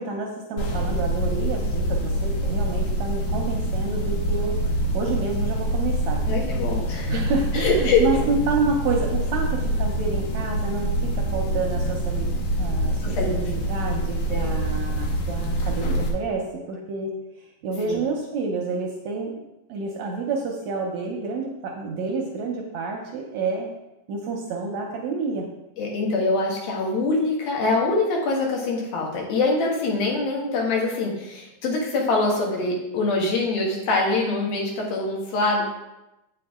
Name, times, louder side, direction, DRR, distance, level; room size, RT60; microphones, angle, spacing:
voice 1, 0.0-4.6 4.9-6.2 6.5-17.1 17.4-19.3 19.7-23.7 24.1-25.5, right 4 dB, 70° right, 0 dB, 1.7 m, -29 dB
sound 1, 0.6-16.1, right 1 dB, 65° left, 1.6 m, -25 dB
voice 2, 6.3-7.2 7.5-8.0 13.0-13.4 14.3-14.6 17.9-18.0 25.8-35.6, left 3 dB, 85° left, -2 dB, 3.4 m, -24 dB
8.4 x 7.0 x 3.7 m, 0.94 s
omnidirectional pair, 4.1 m